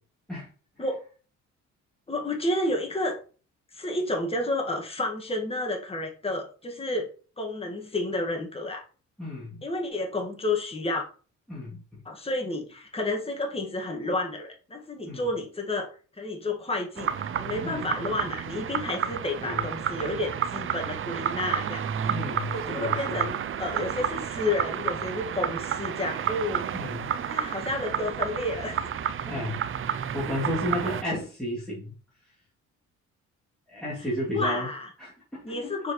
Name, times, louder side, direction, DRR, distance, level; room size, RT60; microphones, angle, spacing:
voice 1, 2.1-3.2 3.7-7.1 7.4-8.8 9.6-11.1 12.1-15.9 16.2-21.8 22.5-26.6 27.3-28.8 34.3-34.9 35.4-35.9, left 2 dB, 20° left, 1 dB, 1.8 m, -30 dB
voice 2, 9.2-9.6 11.5-12.0 15.0-15.3 17.6-17.9 19.4-19.7 22.0-23.4 26.7-27.1 29.3-29.6 30.1-31.9 33.7-34.7 35.0-35.7, left 1 dB, ahead, -9 dB, 2.8 m, -33 dB
sound 1, 17.0-31.0, right 8 dB, 45° right, 0.6 m, -31 dB
6.4 x 4.7 x 3.2 m, 0.38 s
cardioid pair, 90°, 30 cm